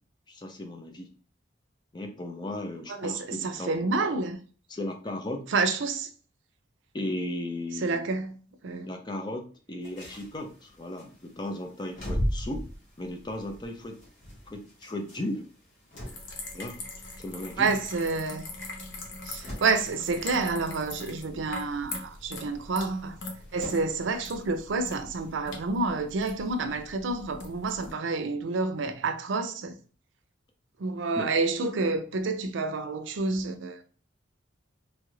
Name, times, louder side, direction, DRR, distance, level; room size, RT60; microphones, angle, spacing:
voice 1, 0.3-1.1 1.9-4.2 4.7-5.5 6.9-8.0 8.8-12.7 13.0-14.0 14.5-15.5 16.5-16.8 17.2-17.7 31.1-31.3, left 1 dB, 25° left, 0.5 m, -36 dB
voice 2, 2.9-4.4 5.5-6.1 7.8-8.9 17.6-18.5 19.2-23.2 23.5-29.8 30.8-33.8, right 3 dB, 80° right, 0.5 m, -29 dB
sound 1, 9.8-25.3, equal, 40° left, 1.3 m, -41 dB
sound 2, 16.1-27.9, left 2 dB, 70° left, 0.7 m, -42 dB
3.1 x 2.4 x 3.1 m
head